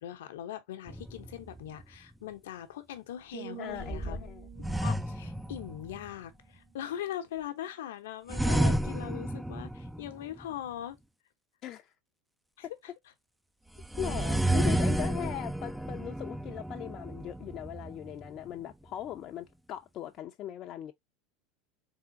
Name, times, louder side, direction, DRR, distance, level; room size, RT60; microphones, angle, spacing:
voice 1, 0.0-4.2 4.8-11.0 12.6-12.9, left 11 dB, 80° left, 0.8 m, -41 dB
sound 1, 0.9-1.8 3.8-6.1 8.3-10.4 13.8-18.5, right 1 dB, 5° right, 0.4 m, -31 dB
sound 2, 3.3-7.3 7.7-8.0, right 13 dB, 65° right, 0.5 m, -50 dB
voice 2, 3.6-4.5 11.6-11.9 14.0-20.9, left 11 dB, 45° left, 0.5 m, -39 dB
3.7 x 3.6 x 2.6 m
hypercardioid pair, 100°, 0 cm